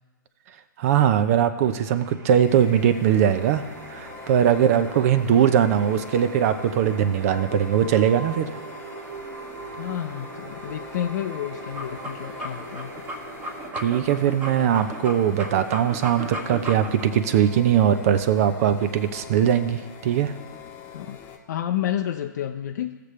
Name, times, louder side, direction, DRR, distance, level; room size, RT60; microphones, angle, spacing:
voice 1, 0.8-3.6 3.9-8.5 13.8-20.3, right 9 dB, 45° right, 11 dB, 0.7 m, -21 dB
sound 1, 1.6-20.6, right 3 dB, 75° right, 1.2 m, -42 dB
sound 2, 2.4-21.4, left 6 dB, 20° left, 1.1 m, -44 dB
voice 2, 9.8-13.1 20.9-21.2 21.5-23.0, left 11 dB, 55° left, 5 dB, 0.6 m, -30 dB
sound 3, 11.6-17.1, right 1 dB, 15° right, 1.3 m, -35 dB
16.5 x 6.8 x 3.2 m, 1.4 s
hypercardioid pair, 130°, 11 cm